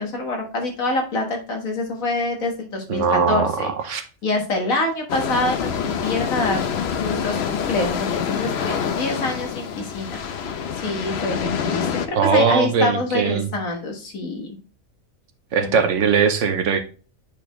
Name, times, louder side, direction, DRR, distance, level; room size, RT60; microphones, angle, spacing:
voice 1, 0.0-3.7 4.2-6.6 7.0-10.2 10.8-11.4 11.6-14.6 15.6-15.7, left 2 dB, 80° left, 2 dB, 2.0 m, -26 dB
voice 2, 2.9-4.0 12.1-13.5 15.5-16.8, right 6 dB, 65° right, 9 dB, 1.1 m, -20 dB
sound 1, 5.1-12.1, left 7 dB, 60° left, 0.9 m, -26 dB
8.6 x 4.3 x 3.1 m, 0.36 s
omnidirectional pair, 1.4 m